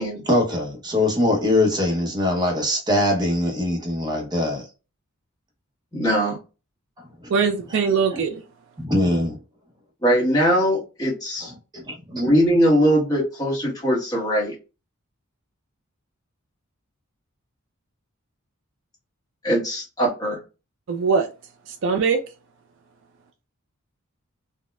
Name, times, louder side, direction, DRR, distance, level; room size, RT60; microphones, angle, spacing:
voice 1, 0.3-4.7 7.0-7.3 8.1-8.2 8.8-9.4 11.7-12.3, left 1 dB, 20° right, 0.8 m, -22 dB
voice 2, 5.9-6.4 10.0-11.5 12.1-14.5 19.4-20.4, equal, 15° left, 1.2 m, -21 dB
voice 3, 7.3-8.4 20.9-21.3 21.7-22.2, right 5 dB, 60° right, 0.4 m, -21 dB
4.0 x 2.1 x 2.3 m
head